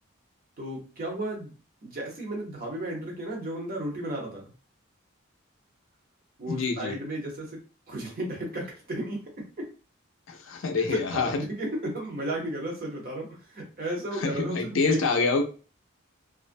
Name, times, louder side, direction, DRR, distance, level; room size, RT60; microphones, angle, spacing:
voice 1, 0.6-1.5 1.8-4.5 6.4-7.6 7.9-9.7 10.9-15.0, right 1 dB, 45° right, -1 dB, 0.8 m, -34 dB
voice 2, 6.5-7.0 10.3-11.4 14.2-15.4, left 4 dB, 65° left, 4 dB, 0.4 m, -26 dB
2.4 x 2.1 x 2.5 m, 0.35 s
head